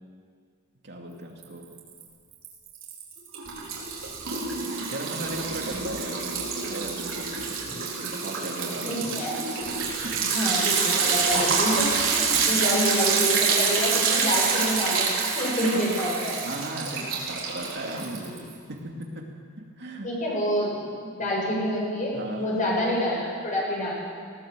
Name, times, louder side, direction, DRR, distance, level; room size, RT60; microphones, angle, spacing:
voice 1, 0.8-1.8 4.8-7.6 8.0-9.1 10.0-10.3 12.3-12.6 15.7-16.0 16.4-20.1 21.0-21.1 22.1-22.8, right 1 dB, 55° right, 0 dB, 2.6 m, -37 dB
Liquid, 1.4-2.0 2.3-18.5, right 5 dB, 75° right, 4.1 m, -27 dB
voice 2, 8.8-9.4 10.2-16.4 20.0-23.9, equal, 40° left, -4 dB, 7.5 m, -27 dB
19.5 x 18.0 x 7.7 m, 2.1 s
head